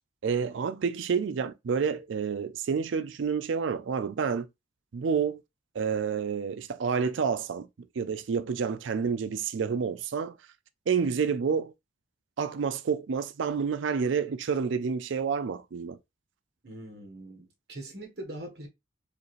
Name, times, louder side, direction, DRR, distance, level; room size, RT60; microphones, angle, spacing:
voice 1, 0.2-4.5 4.9-5.4 5.7-7.7 8.0-10.4 10.9-11.7 12.4-16.0, right 6 dB, 85° right, 0.4 m, -29 dB
voice 2, 16.6-18.7, right 1 dB, 60° right, 1.3 m, -42 dB
5.0 x 2.5 x 3.1 m
head